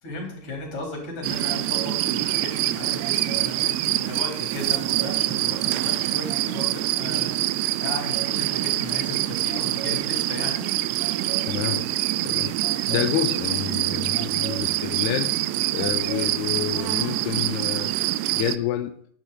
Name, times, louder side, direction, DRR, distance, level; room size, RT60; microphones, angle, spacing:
voice 1, 0.0-10.7, left 3 dB, 35° left, 0 dB, 4.1 m, -36 dB
sound 1, 1.2-18.6, right 15 dB, 80° right, 2.6 m, -25 dB
voice 2, 11.4-11.9 12.2-12.6 12.9-18.0 18.3-19.0, left 12 dB, 90° left, 8 dB, 2.3 m, -29 dB
12.5 x 11.0 x 4.1 m, 0.63 s
omnidirectional pair, 5.3 m